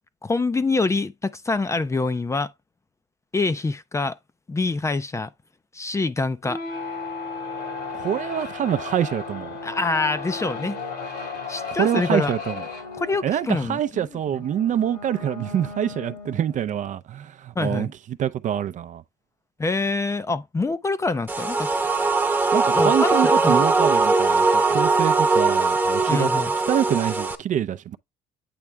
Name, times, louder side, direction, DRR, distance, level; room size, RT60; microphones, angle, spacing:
voice 1, 0.2-2.5 3.3-4.2 4.5-5.3 5.7-6.6 9.6-10.8 11.5-12.3 13.0-14.1 14.3-14.4 17.6-17.9 19.6-21.7 22.6-23.6 26.1-26.5, left 3 dB, 15° left, 0.5 m, -25 dB
sound 1, 6.4-16.7, left 4 dB, 80° left, 3.2 m, -35 dB
voice 2, 7.9-9.6 11.7-12.6 13.2-17.9 18.2-19.0 22.5-26.3 26.7-28.0, right 10 dB, 50° right, 0.5 m, -25 dB
sound 2, 21.3-27.4, right 3 dB, 10° right, 0.9 m, -20 dB
8.6 x 3.3 x 3.3 m
cardioid pair, 110°, 17 cm